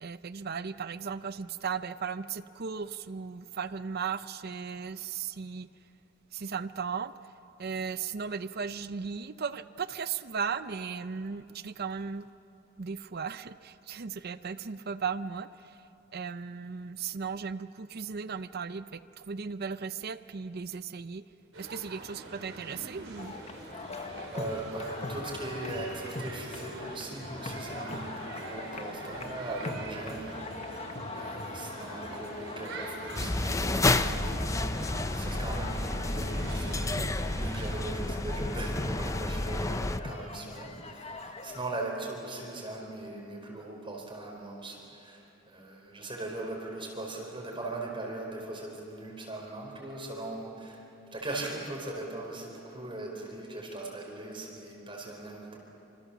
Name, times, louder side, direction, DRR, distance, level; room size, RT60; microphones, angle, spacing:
voice 1, 0.0-5.7 6.3-7.1 7.6-12.3 12.8-15.8 16.1-21.2 21.6-23.3, right 6 dB, 50° right, 13 dB, 0.6 m, -36 dB
sound 1, 21.5-37.8, right 2 dB, 75° right, 5.6 m, -44 dB
sound 2, 23.2-41.6, left 2 dB, 30° left, 1.4 m, -42 dB
voice 2, 24.3-50.8 51.1-55.6, right 2 dB, 25° right, -1 dB, 4.7 m, -40 dB
sound 3, 33.1-40.0, left 2 dB, 15° left, 0.6 m, -30 dB
27.0 x 26.5 x 7.2 m, 2.9 s
head